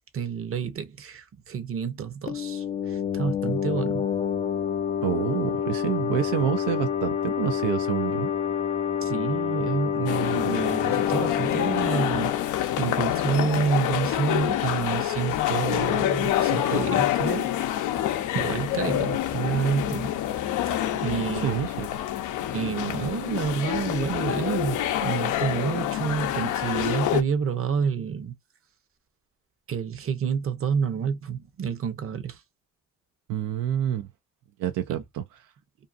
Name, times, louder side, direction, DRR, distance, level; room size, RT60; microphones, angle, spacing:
voice 1, 0.1-4.1 9.0-12.4 12.8-17.8 18.3-20.2 20.9-21.6 22.5-28.3 29.7-32.4, right 6 dB, 45° right, 0.8 m, -29 dB
sound 1, 2.3-13.7, left 8 dB, 25° left, 0.3 m, -28 dB
voice 2, 5.0-8.3 21.4-21.9 33.3-34.1 34.6-35.2, right 11 dB, 85° right, 0.5 m, -28 dB
sound 2, 10.1-27.2, left 12 dB, 85° left, 0.5 m, -27 dB
2.6 x 2.4 x 2.4 m
cardioid pair, 90°, 30 cm